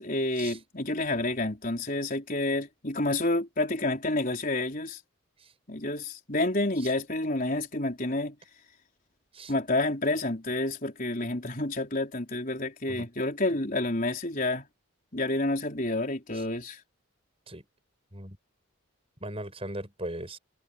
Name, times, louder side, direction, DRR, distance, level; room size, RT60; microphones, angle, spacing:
voice 1, 0.0-5.0 5.7-8.4 9.5-14.7 15.1-16.8, left 2 dB, 40° left, 4.4 m, -29 dB
voice 2, 19.2-20.4, right 1 dB, 25° right, 6.5 m, -39 dB
head